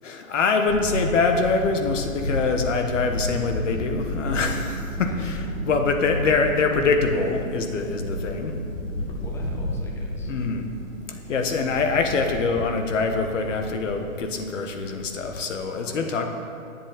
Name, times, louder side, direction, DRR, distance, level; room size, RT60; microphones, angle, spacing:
voice 1, 0.0-5.4 5.6-8.6 10.2-10.7 11.1-16.3, left 4 dB, 65° left, 5 dB, 1.6 m, -24 dB
Camera, 0.7-15.4, left 1 dB, 45° left, 2.3 m, -32 dB
sound 1, 2.5-14.5, right 3 dB, 25° right, 1.4 m, -41 dB
voice 2, 9.2-10.3 11.3-11.7 15.8-16.3, equal, 5° left, -1 dB, 1.0 m, -43 dB
21.0 x 7.7 x 4.2 m, 2.5 s
hypercardioid pair, 140°, 41 cm